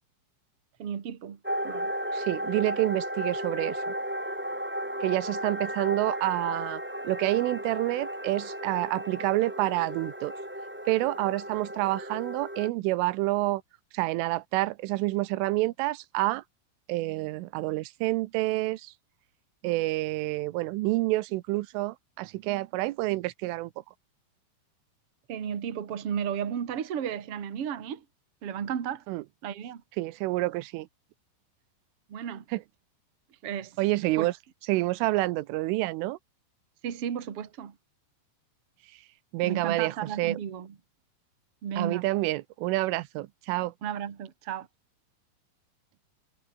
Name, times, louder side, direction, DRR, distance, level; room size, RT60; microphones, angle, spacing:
voice 1, 0.8-1.4 1.6-1.9 25.3-28.0 28.4-29.0 29.4-29.8 32.1-32.4 33.4-33.8 34.2-34.3 36.8-37.7 39.4-40.7 41.6-42.0 43.8-44.7, right 8 dB, 40° right, 2.2 m, -33 dB
sound 1, 1.4-12.7, equal, 5° right, 1.8 m, -34 dB
voice 2, 2.1-3.8 5.0-10.3 10.9-13.6 13.9-16.4 16.9-18.9 19.6-23.7 29.1-29.2 30.0-30.9 32.5-32.6 33.8-34.3 34.7-36.2 39.3-40.4 41.8-43.7, right 19 dB, 85° right, 3.4 m, -28 dB
omnidirectional pair, 5.6 m